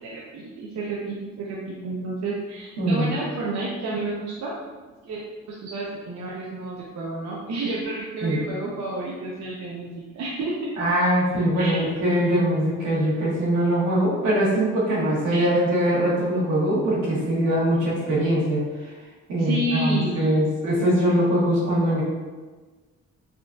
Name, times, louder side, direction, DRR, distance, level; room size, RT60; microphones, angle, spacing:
voice 1, 0.0-4.5 5.0-5.2 5.5-9.9 10.1-10.7 11.6-11.9 15.3-15.6 19.4-20.4, right 2 dB, 60° right, -5 dB, 0.6 m, -30 dB
voice 2, 2.8-3.2 8.2-8.4 10.8-18.6 19.3-22.0, right 1 dB, 80° right, -7 dB, 1.2 m, -22 dB
3.6 x 2.3 x 2.5 m, 1.3 s
cardioid pair, 90°, 30 cm